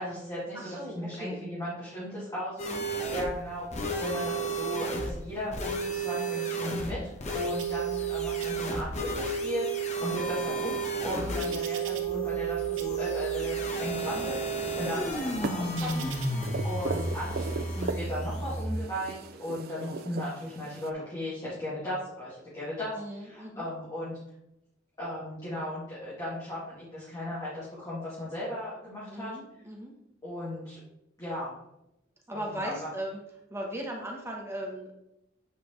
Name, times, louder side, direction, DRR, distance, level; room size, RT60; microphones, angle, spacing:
voice 1, 0.0-3.7 4.0-7.0 7.3-10.8 11.0-24.2 25.0-29.3 30.2-30.8 31.2-31.5 32.3-32.9, left 1 dB, 20° left, -10 dB, 2.2 m, -36 dB
voice 2, 0.5-1.4 2.7-2.9 11.2-11.6 16.3-16.6 23.0-23.7 29.1-29.9 32.3-33.2 33.5-35.0, equal, 15° right, 0 dB, 1.2 m, -38 dB
sound 1, 2.6-18.7, right 3 dB, 35° left, 1.1 m, -32 dB
sound 2, 7.6-8.1 8.4-9.1 9.7-12.5 12.8-13.5 14.1-16.3, right 3 dB, 80° right, 1.0 m, -45 dB
sound 3, 13.4-20.9, right 4 dB, 50° right, 0.4 m, -40 dB
8.2 x 5.0 x 3.2 m, 0.85 s
head